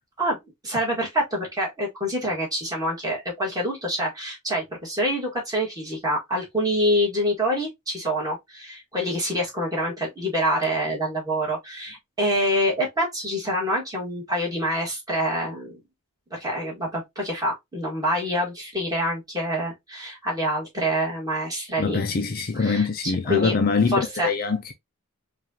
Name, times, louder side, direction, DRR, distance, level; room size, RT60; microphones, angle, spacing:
voice 1, 0.6-15.8 16.3-22.0 22.5-23.6 23.9-24.3, equal, 15° right, 1.7 m, -26 dB
voice 2, 21.8-24.7, left 4 dB, 40° left, 0.4 m, -24 dB
4.7 x 2.5 x 2.8 m
head